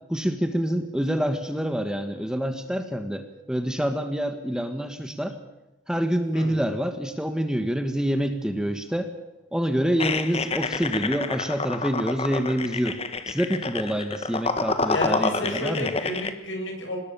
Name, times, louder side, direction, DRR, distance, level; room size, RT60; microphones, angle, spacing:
voice 1, 0.1-5.4 5.9-9.1 9.5-13.0 13.3-15.9, equal, 5° right, 7 dB, 1.5 m, -27 dB
sound 1, 10.0-16.3, left 3 dB, 30° left, 1.5 m, -28 dB
voice 2, 14.9-17.0, left 1 dB, 65° left, 3 dB, 8.0 m, -31 dB
26.5 x 20.0 x 6.9 m, 1.0 s
head